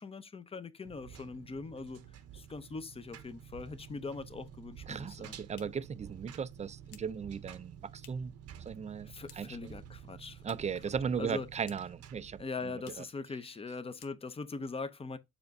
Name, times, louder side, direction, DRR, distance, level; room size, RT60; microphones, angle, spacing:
voice 1, 0.0-2.0 2.3-5.4 9.0-10.4 11.2-11.5 12.4-15.2, left 4 dB, 20° left, 0.7 m, -41 dB
Engine, 0.8-12.5, right 9 dB, 60° right, 0.8 m, -51 dB
voice 2, 4.9-8.3 8.7-9.7 10.4-12.4 13.0-13.1, right 6 dB, 25° right, 0.4 m, -37 dB
sound 1, 5.4-8.4 8.7-9.7 9.9-10.9 11.1-12.1 12.3-12.4 12.8-13.2 13.5-13.7 13.9-14.6, left 10 dB, 85° left, 0.8 m, -60 dB
7.1 x 2.5 x 5.2 m
cardioid pair, 120°, 29 cm